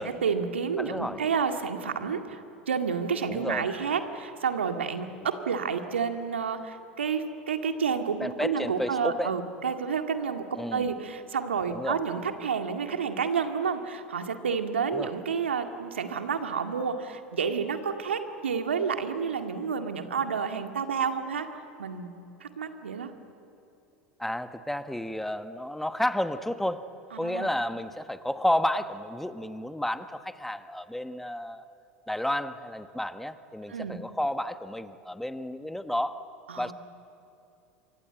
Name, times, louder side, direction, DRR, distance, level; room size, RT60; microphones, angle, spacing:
voice 1, 0.0-21.5 21.8-22.1 22.4-23.1 27.1-27.5 33.7-34.0 36.5-36.7, right 6 dB, 80° right, 6 dB, 2.1 m, -30 dB
voice 2, 0.8-1.2 3.2-3.6 8.2-9.3 10.5-10.9 11.7-12.0 14.9-15.1 24.2-26.9 27.2-31.6 32.1-36.2 36.6-36.7, left 1 dB, 5° left, 11 dB, 1.3 m, -31 dB
28.0 x 25.0 x 8.0 m, 2.8 s
figure-of-eight pair, 80°, 6 cm